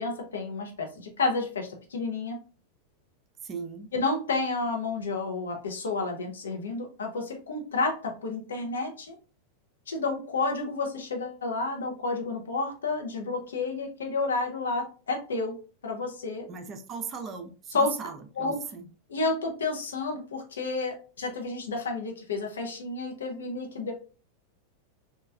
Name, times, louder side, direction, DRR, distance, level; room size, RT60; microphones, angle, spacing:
voice 1, 0.0-2.4 3.9-9.1 9.9-15.5 15.8-16.5 17.7-17.9 18.4-18.6 19.1-23.9, left 3 dB, 65° left, 0.6 m, -30 dB
voice 2, 3.4-3.9 16.5-18.9, right 5 dB, 30° right, 0.4 m, -38 dB
3.1 x 2.2 x 2.3 m
figure-of-eight pair, 90°, 0 cm